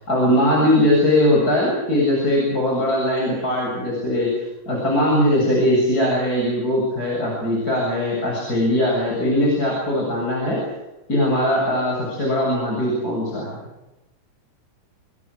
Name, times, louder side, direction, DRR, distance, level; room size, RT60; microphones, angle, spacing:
voice 1, 0.0-4.3 4.7-10.6 11.1-13.6, left 1 dB, 25° left, -3 dB, 8.1 m, -20 dB
29.0 x 27.0 x 6.5 m, 1.0 s
omnidirectional pair, 3.8 m